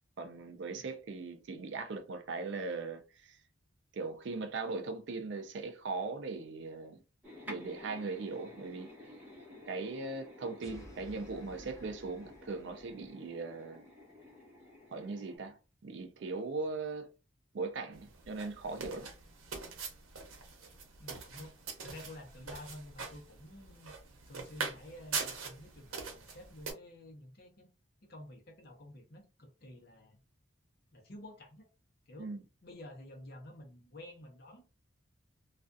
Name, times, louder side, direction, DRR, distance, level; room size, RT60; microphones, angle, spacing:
voice 1, 0.2-3.4 3.9-7.0 7.5-9.0 9.7-13.8 14.9-17.1 17.5-19.1 32.2-32.4, right 3 dB, 60° right, 0.4 m, -39 dB
sound 1, 7.2-15.4, left 1 dB, 10° right, 0.8 m, -52 dB
sound 2, 10.6-13.2, equal, 15° left, 0.5 m, -55 dB
sound 3, 17.9-26.7, right 5 dB, 90° right, 0.7 m, -43 dB
voice 2, 21.0-21.6 21.8-23.9 24.3-27.7 28.0-30.2 30.9-31.7 32.1-32.3 32.6-34.6, left 1 dB, 50° left, 0.7 m, -51 dB
2.4 x 2.2 x 2.5 m
head